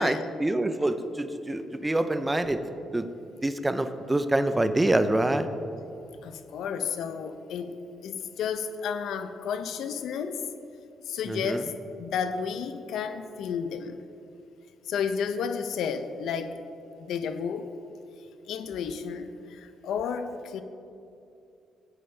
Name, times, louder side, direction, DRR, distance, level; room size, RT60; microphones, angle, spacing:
voice 1, 0.0-2.6 2.9-3.1 3.4-5.5 11.3-11.6, right 1 dB, 15° right, 9 dB, 0.6 m, -26 dB
voice 2, 6.2-7.8 8.0-10.4 11.1-14.0 14.9-16.6 17.0-17.7 18.5-20.6, left 6 dB, 80° left, 10 dB, 0.7 m, -32 dB
16.0 x 8.6 x 3.4 m, 2.6 s
cardioid pair, 90°, 0 cm